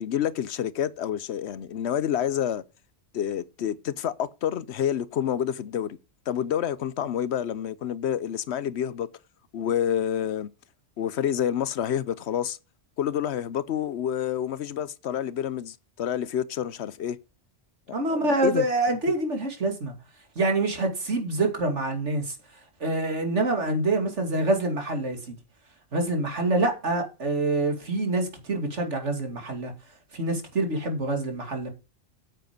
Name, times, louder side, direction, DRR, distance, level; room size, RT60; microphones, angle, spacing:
voice 1, 0.0-2.6 3.1-6.0 6.3-9.1 9.5-10.5 11.0-12.6 13.0-17.2 17.9-18.7, left 9 dB, 70° left, 0.9 m, -28 dB
voice 2, 17.9-19.9 20.4-22.4 22.8-25.4 25.9-29.7 30.1-31.7, right 2 dB, 80° right, 2.9 m, -26 dB
9.2 x 7.8 x 5.2 m
omnidirectional pair, 1.2 m